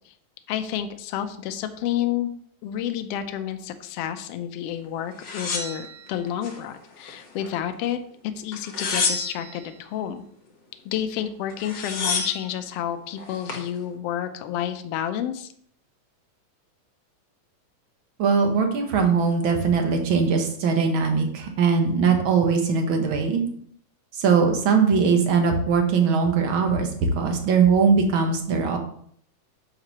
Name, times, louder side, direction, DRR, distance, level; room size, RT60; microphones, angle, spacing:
voice 1, 0.5-2.3 2.6-8.0 8.4-10.2 10.8-15.5, left 10 dB, 75° left, 9 dB, 1.4 m, -30 dB
sound 1, 5.2-6.6 7.0-7.8 8.5-9.6 11.2-11.3 11.5-12.5 13.2-13.7, left 4 dB, 45° left, 1.3 m, -29 dB
voice 2, 18.2-23.4 24.1-26.9 27.2-28.8, right 5 dB, 60° right, 4 dB, 1.4 m, -21 dB
8.9 x 6.7 x 3.0 m, 0.62 s
omnidirectional pair, 3.4 m